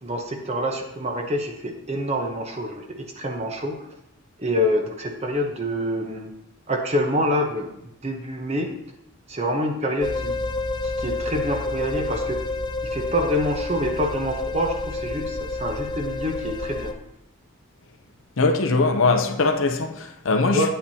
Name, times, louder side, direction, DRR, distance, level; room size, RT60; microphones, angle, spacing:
voice 1, 0.0-3.8 4.4-6.3 6.7-8.8 9.3-10.4 10.8-12.4 12.8-16.9 20.5-20.7, equal, 30° right, 0.9 m, -26 dB
sound 1, 10.0-16.9, left 2 dB, 20° left, 0.4 m, -29 dB
voice 2, 18.4-20.7, left 3 dB, 75° left, 0.7 m, -21 dB
9.1 x 8.5 x 2.8 m
head